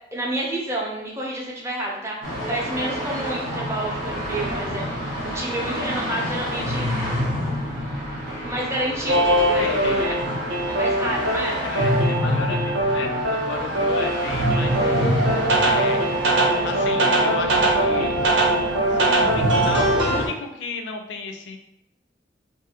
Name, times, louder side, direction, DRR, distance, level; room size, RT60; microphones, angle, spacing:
voice 1, 0.1-6.9 8.4-10.2 10.7-11.6, right 1 dB, 15° right, -3 dB, 0.6 m, -29 dB
sound 1, 2.2-20.3, equal, 90° right, 1.2 m, -28 dB
sound 2, 9.1-20.2, right 1 dB, 75° right, 0.6 m, -22 dB
voice 2, 9.6-10.3 11.6-15.3 15.6-16.0 16.6-18.2 18.9-21.6, left 4 dB, 70° left, 4 dB, 0.4 m, -33 dB
2.5 x 2.5 x 2.7 m, 0.81 s
head